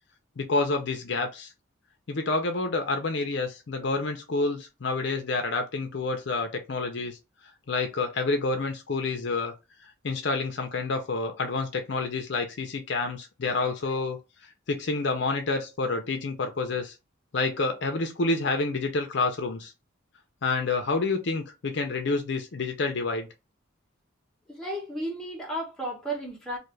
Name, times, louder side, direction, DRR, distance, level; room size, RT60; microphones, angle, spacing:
voice 1, 0.4-1.5 2.1-7.2 7.7-9.5 10.0-14.2 14.7-16.9 17.3-19.7 20.4-23.3, left 3 dB, 55° left, 0.5 m, -28 dB
voice 2, 24.5-26.6, right 1 dB, 5° left, 1.0 m, -33 dB
2.6 x 2.5 x 3.1 m
head